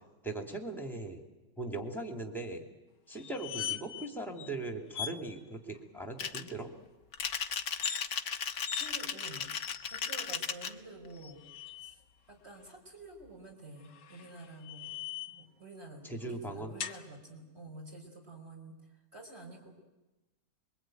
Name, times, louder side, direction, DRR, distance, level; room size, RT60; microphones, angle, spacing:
voice 1, 0.2-1.2 1.6-2.6 3.1-6.7 16.0-16.7, right 2 dB, ahead, 3 dB, 2.8 m, -39 dB
sound 1, 3.2-4.1 4.4-4.5 4.9-5.2 7.7-8.1 8.7-8.9 9.6-10.2 11.1-12.0 13.8-15.5 16.8-17.0, left 8 dB, 85° left, 1.8 m, -40 dB
sound 2, 6.2-6.5 7.1-10.7, left 7 dB, 60° left, 1.6 m, -36 dB
voice 2, 8.7-9.5 9.9-11.4 11.7-12.0 12.3-15.0 15.3-19.8, right 2 dB, 35° right, 1 dB, 5.3 m, -49 dB
26.0 x 22.5 x 9.3 m, 1.1 s
omnidirectional pair, 1.9 m